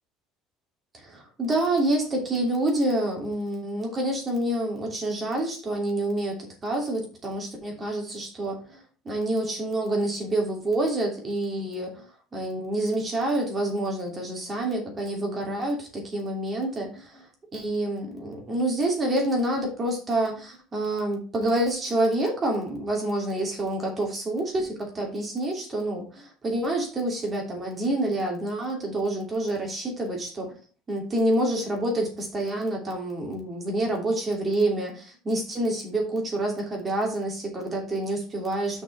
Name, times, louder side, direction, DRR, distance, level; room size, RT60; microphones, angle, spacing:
voice 1, 1.1-8.6 9.0-12.0 12.3-16.9 17.5-30.5 30.9-38.8, right 1 dB, 20° right, 0 dB, 2.8 m, -27 dB
6.1 x 5.4 x 5.4 m, 0.37 s
cardioid pair, 160°, 0 cm